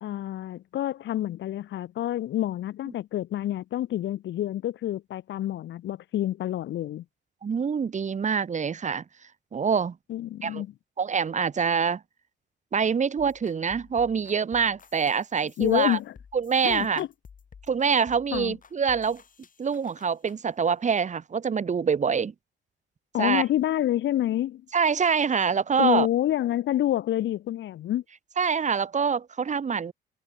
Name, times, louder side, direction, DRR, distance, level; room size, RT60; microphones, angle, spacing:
voice 1, 0.0-7.0 10.1-10.7 15.6-16.1 16.6-17.1 18.3-18.6 23.1-24.6 25.8-28.0, left 13 dB, 65° left, 0.7 m, -28 dB
voice 2, 7.4-9.0 9.5-10.0 10.4-10.6 11.0-12.0 12.7-16.0 16.3-17.0 17.7-19.2 19.6-22.3 23.2-23.4 24.7-26.1 28.4-29.9, right 6 dB, 35° right, 1.3 m, -25 dB
sound 1, 13.2-20.4, left 6 dB, 45° left, 4.1 m, -52 dB
cardioid pair, 90°, 20 cm